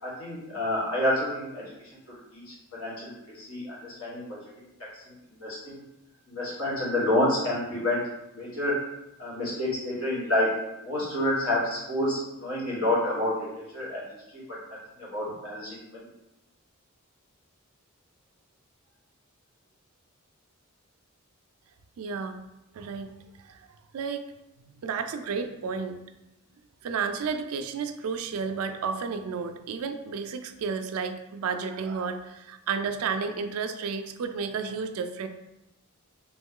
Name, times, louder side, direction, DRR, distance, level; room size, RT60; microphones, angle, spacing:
voice 1, 0.0-1.6 2.1-4.4 5.1-5.8 6.3-8.0 8.3-8.8 9.2-10.5 10.8-14.0 14.3-14.6 15.0-16.1, left 1 dB, 65° left, -6 dB, 1.5 m, -29 dB
voice 2, 22.0-22.4 22.7-23.1 23.4-23.7 23.9-24.3 24.7-26.0 26.8-35.3, right 5 dB, 70° right, 8 dB, 0.4 m, -32 dB
3.0 x 3.0 x 3.7 m, 0.91 s
head